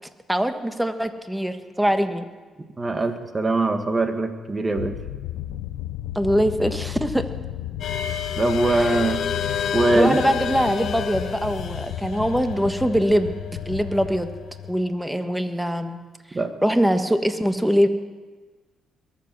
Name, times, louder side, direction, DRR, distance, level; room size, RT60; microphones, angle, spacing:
voice 1, 0.3-2.3 6.1-7.3 8.7-9.0 9.9-13.3 13.6-14.3 14.7-16.0 16.6-17.9, equal, 5° right, 8 dB, 1.4 m, -22 dB
voice 2, 2.8-5.0 8.4-9.2 9.7-10.2 16.3-16.5, right 2 dB, 30° right, 7 dB, 1.8 m, -22 dB
sound 1, 4.8-14.9, left 13 dB, 85° left, 0.6 m, -34 dB
sound 2, 7.8-14.7, left 7 dB, 65° left, 1.3 m, -31 dB
22.0 x 7.4 x 6.2 m, 1.4 s
hypercardioid pair, 50°, 0 cm